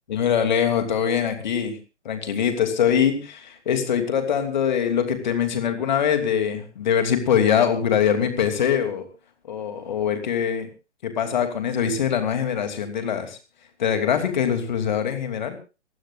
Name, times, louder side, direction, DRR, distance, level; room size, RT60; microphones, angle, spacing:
voice 1, 0.1-1.8 2.0-9.1 9.4-10.7 11.0-13.4 13.8-15.6, left 8 dB, 40° left, 7 dB, 2.9 m, -23 dB
25.0 x 16.0 x 2.5 m, 0.31 s
figure-of-eight pair, 130°, 35 cm